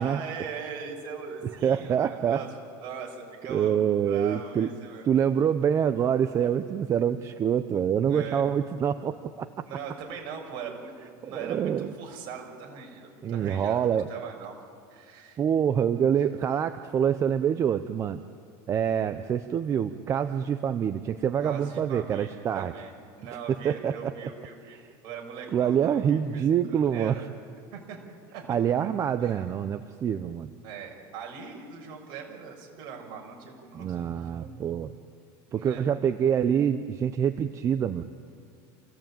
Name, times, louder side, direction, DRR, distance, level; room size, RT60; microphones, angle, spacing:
voice 1, 0.0-2.5 2.8-3.8 4.1-5.0 8.1-8.5 9.6-10.9 11.2-13.8 14.1-14.5 14.9-15.4 21.4-22.9 23.2-26.4 26.7-27.2 27.7-28.0 28.3-28.6 29.2-29.4 30.6-34.5 35.5-35.8, right 6 dB, 55° right, 1 dB, 6.5 m, -40 dB
voice 2, 1.6-2.4 3.5-4.7 5.0-9.5 11.2-11.9 13.2-14.1 15.4-18.2 18.7-22.7 23.6-24.3 24.7-24.9 25.5-27.1 28.5-30.5 33.7-34.9 35.5-38.0, right 8 dB, 30° right, 10 dB, 0.7 m, -26 dB
28.0 x 17.0 x 9.0 m, 2.3 s
cardioid pair, 145°, 10 cm